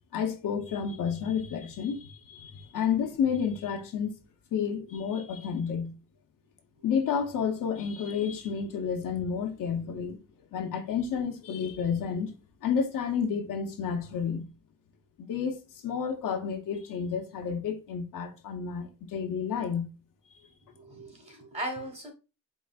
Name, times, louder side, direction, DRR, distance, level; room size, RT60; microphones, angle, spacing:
voice 1, 0.1-4.2 4.5-5.9 6.8-10.2 10.5-12.3 12.6-14.5 15.2-19.9, left 7 dB, 65° left, 0.8 m, -30 dB
voice 2, 20.7-22.1, right 1 dB, 20° right, 1.3 m, -37 dB
4.9 x 3.2 x 2.4 m
cardioid pair, 145°, 34 cm